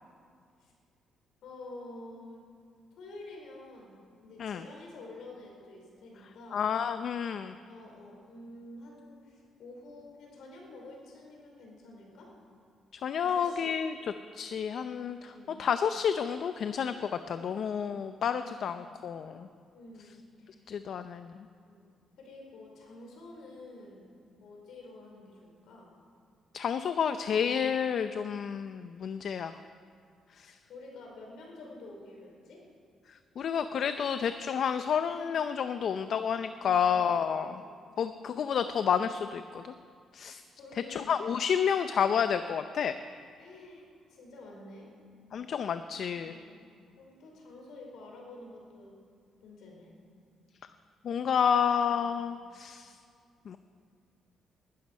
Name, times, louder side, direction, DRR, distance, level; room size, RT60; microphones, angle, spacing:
voice 1, 1.4-2.4 3.0-6.7 7.6-12.3 13.2-13.7 15.0-15.6 18.3-18.6 19.7-20.7 21.7-21.9 22.2-24.0 24.4-25.9 30.4-32.6 36.5-37.0 37.5-37.9 40.6-41.3 43.4-44.9 46.2-46.6 47.0-49.0 49.4-49.9, left 2 dB, 75° left, -1 dB, 4.9 m, -49 dB
voice 2, 6.5-7.6 12.9-13.9 14.3-15.3 15.6-19.5 20.7-21.4 26.5-29.5 30.3-30.5 33.1-37.6 38.0-39.7 40.1-40.4 40.9-42.9 45.3-46.3 51.0-53.0 53.5-53.6, left 7 dB, 60° left, 10 dB, 0.6 m, -30 dB
20.0 x 12.5 x 5.5 m, 2.3 s
cardioid pair, 90°, 0 cm